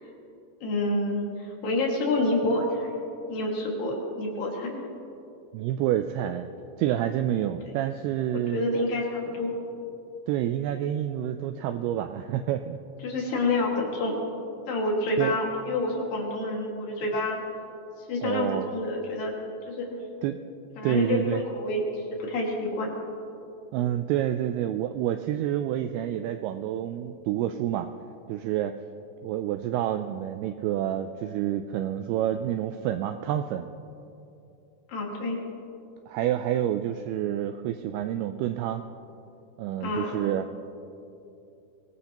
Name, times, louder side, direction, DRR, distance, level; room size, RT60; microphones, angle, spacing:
voice 1, 0.6-2.9 3.3-4.8 8.5-9.5 13.0-14.2 14.7-17.4 18.1-19.3 19.7-20.0 20.8-21.8 22.2-22.9 34.9-35.4 39.8-40.3, left 2 dB, 60° left, -1 dB, 3.4 m, -28 dB
voice 2, 5.5-6.5 6.8-8.7 10.3-12.8 15.2-15.4 18.2-18.7 20.2-20.4 20.8-21.4 23.7-27.9 28.3-28.7 29.2-33.7 36.1-38.8 39.6-40.4, right 11 dB, 85° right, 8 dB, 2.3 m, -28 dB
23.5 x 18.5 x 2.9 m, 2.8 s
omnidirectional pair, 5.0 m